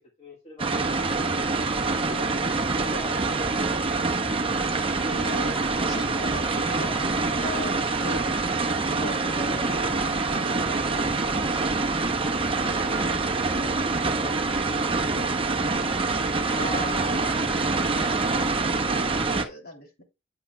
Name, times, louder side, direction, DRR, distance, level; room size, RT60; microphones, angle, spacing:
voice 1, 0.0-2.3 2.7-3.6 12.5-14.5, left 1 dB, 30° left, -1 dB, 1.6 m, -43 dB
sound 1, 0.6-19.4, right 3 dB, 25° right, 1.0 m, -25 dB
voice 2, 5.1-7.1 7.4-11.4 16.6-20.0, left 1 dB, 50° left, 1 dB, 2.9 m, -39 dB
8.9 x 8.4 x 2.2 m, 0.27 s
head